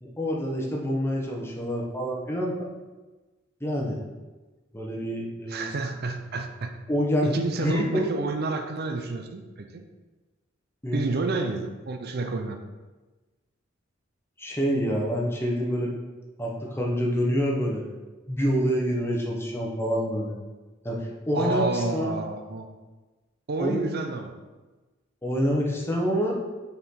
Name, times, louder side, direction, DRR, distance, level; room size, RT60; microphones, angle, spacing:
voice 1, 0.0-2.7 3.6-4.0 4.7-5.7 6.9-7.3 7.6-8.1 10.8-11.1 14.4-15.9 16.4-17.8 18.3-20.3 20.8-22.1 23.6-24.0 25.2-26.4, equal, 10° left, -2 dB, 1.0 m, -27 dB
voice 2, 5.5-6.7 7.2-9.8 10.9-12.6 21.3-22.7 23.5-24.3, right 3 dB, 50° right, 5 dB, 0.5 m, -29 dB
6.7 x 4.4 x 3.8 m, 1.2 s
head